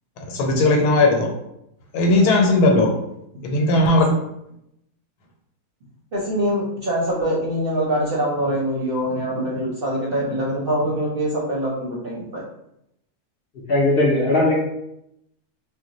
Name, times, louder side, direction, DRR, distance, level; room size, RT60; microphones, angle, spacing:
voice 1, 0.2-1.3 1.9-2.9 3.4-4.2, left 2 dB, 85° left, 2 dB, 1.2 m, -17 dB
voice 2, 6.1-12.4, equal, 55° right, -5 dB, 0.7 m, -24 dB
voice 3, 13.7-14.5, left 2 dB, 60° left, -4 dB, 0.6 m, -18 dB
2.5 x 2.1 x 3.8 m, 0.80 s
omnidirectional pair, 1.6 m